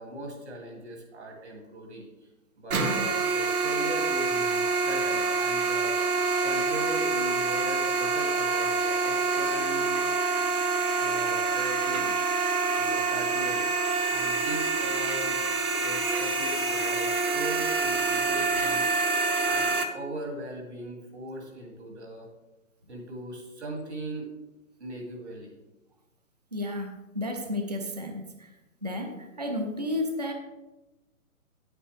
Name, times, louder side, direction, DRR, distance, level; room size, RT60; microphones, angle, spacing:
voice 1, 0.0-2.1 2.6-6.0 6.4-9.9 11.0-12.2 12.7-13.6 14.1-15.4 15.8-18.9 19.4-22.3 22.9-24.3 24.8-25.5, right 1 dB, 50° right, 1 dB, 2.5 m, -39 dB
sound 1, 2.7-19.8, right 4 dB, 80° right, 1.3 m, -26 dB
voice 2, 26.5-28.2 28.8-30.3, left 1 dB, 30° right, 4 dB, 0.5 m, -32 dB
9.5 x 8.0 x 3.3 m, 1.0 s
hypercardioid pair, 180°, 42 cm